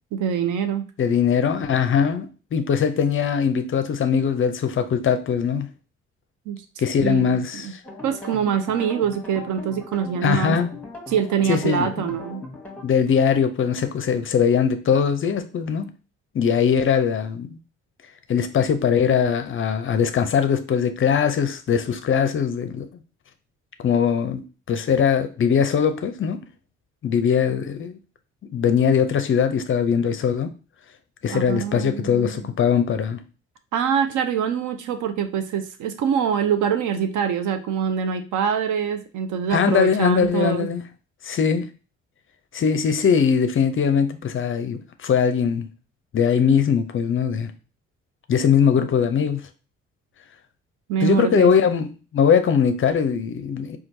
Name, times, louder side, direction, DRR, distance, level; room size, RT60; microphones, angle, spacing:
voice 1, 0.1-0.9 6.5-6.6 7.0-7.7 8.0-10.6 11.1-12.4 31.3-32.5 33.7-40.7 50.9-51.5, right 8 dB, 55° right, 0.6 m, -24 dB
voice 2, 1.0-5.7 6.8-7.8 10.2-10.7 11.5-12.1 12.8-15.9 16.3-17.6 18.3-22.9 23.8-24.4 24.7-26.4 27.0-28.0 28.5-30.5 31.2-33.2 39.5-40.8 41.2-41.7 42.5-45.7 46.1-47.5 48.3-49.4 51.0-51.9 52.1-53.8, left 7 dB, 35° left, 0.5 m, -21 dB
sound 1, 7.8-12.8, left 2 dB, 5° left, 1.0 m, -38 dB
4.4 x 2.3 x 2.6 m
figure-of-eight pair, 45°, 35 cm